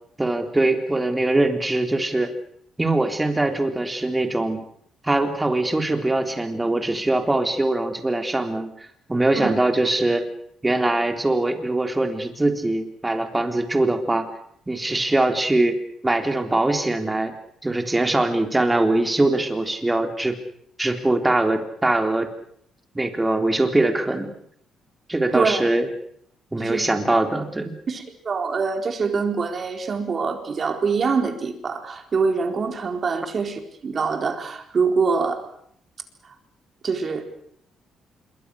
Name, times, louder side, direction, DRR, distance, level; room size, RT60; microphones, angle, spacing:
voice 1, 0.2-2.3 2.8-4.6 5.0-8.7 9.1-10.2 10.6-14.3 14.7-15.8 16.0-17.3 17.6-20.4 20.8-22.3 22.9-24.3 25.1-25.9 26.5-27.7, right 2 dB, 15° right, 6 dB, 3.7 m, -22 dB
voice 2, 27.9-35.5 36.8-37.2, right 5 dB, 45° right, 6 dB, 4.2 m, -24 dB
26.0 x 23.0 x 6.5 m, 0.67 s
cardioid pair, 90°, 0 cm